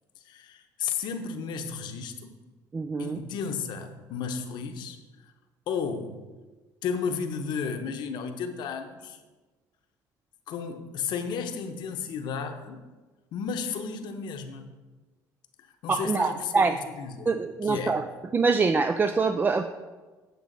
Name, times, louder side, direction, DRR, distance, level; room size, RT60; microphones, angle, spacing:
voice 1, 0.2-2.3 3.0-5.0 5.7-6.2 6.8-9.2 10.5-12.8 13.3-14.7 15.6-17.4 17.6-18.0, left 6 dB, 70° left, 6 dB, 0.9 m, -33 dB
voice 2, 2.7-3.2 15.9-16.8 17.3-18.0 18.3-19.7, right 4 dB, 25° right, 8 dB, 0.4 m, -24 dB
8.2 x 6.8 x 4.0 m, 1.3 s
cardioid pair, 95°, 8 cm